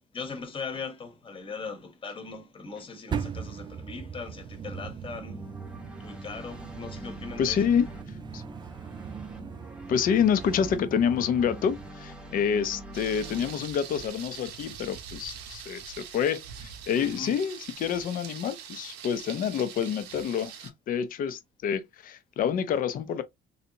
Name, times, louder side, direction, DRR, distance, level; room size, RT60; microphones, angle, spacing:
voice 1, 0.0-5.5 6.0-7.7 17.0-17.4, left 4 dB, 30° left, 1.0 m, -39 dB
sound 1, 3.1-11.9, right 7 dB, 30° right, 0.4 m, -40 dB
sound 2, 5.3-13.5, right 1 dB, 5° right, 0.8 m, -44 dB
voice 2, 7.4-7.9 8.3-8.4 9.9-23.2, left 7 dB, 55° left, 0.6 m, -28 dB
Thunder, 12.9-20.7, right 8 dB, 90° right, 0.8 m, -43 dB
3.2 x 2.7 x 2.8 m
cardioid pair, 110°, 17 cm